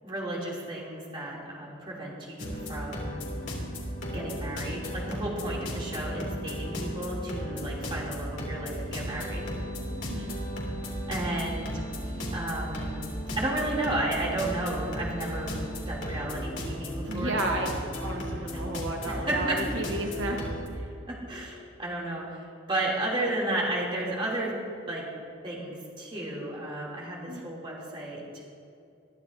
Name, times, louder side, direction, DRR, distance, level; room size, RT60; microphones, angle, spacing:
voice 1, 0.0-3.2 4.1-9.5 11.1-11.7 12.3-13.0 13.4-15.6 15.8-17.8 18.5-18.6 19.1-19.6 21.1-24.5 24.9-25.1 25.4-28.4, right 1 dB, 25° right, -4 dB, 2.9 m, -33 dB
sound 1, 2.4-20.7, equal, 65° left, 2.8 m, -35 dB
sound 2, 9.0-16.3, right 2 dB, 40° right, 1.3 m, -44 dB
voice 2, 17.1-17.7 18.0-20.9 27.3-27.5, right 1 dB, 80° right, 1 dB, 1.2 m, -33 dB
21.0 x 12.5 x 2.7 m, 2.5 s
head